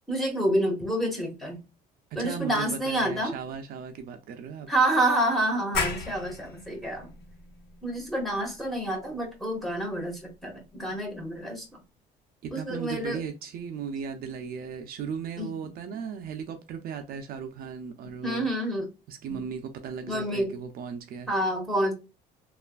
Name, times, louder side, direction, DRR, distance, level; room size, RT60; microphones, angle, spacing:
voice 1, 0.1-1.6 2.1-3.4 4.7-7.1 7.8-11.8 12.5-13.2 15.4-15.5 18.2-18.9 19.3-19.4 20.1-20.6 21.3-21.9, right 1 dB, ahead, 1.3 m, -28 dB
voice 2, 2.1-4.7 12.4-18.5 19.1-21.3, right 6 dB, 60° right, 0.5 m, -36 dB
sound 1, 5.7-11.1, left 4 dB, 70° left, 0.9 m, -37 dB
3.2 x 2.4 x 2.2 m
cardioid pair, 110°, 17 cm